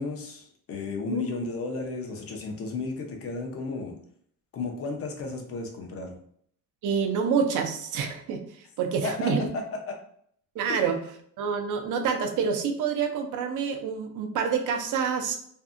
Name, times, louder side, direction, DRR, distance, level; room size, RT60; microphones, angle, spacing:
voice 1, 0.0-3.9 4.5-6.2 9.0-10.0 10.7-10.9, left 3 dB, 45° left, 3 dB, 0.6 m, -33 dB
voice 2, 6.8-8.4 8.8-9.5 10.6-11.0 11.4-15.4, right 6 dB, 65° right, 5 dB, 0.6 m, -27 dB
2.6 x 2.5 x 2.4 m, 0.64 s
cardioid pair, 135°, 33 cm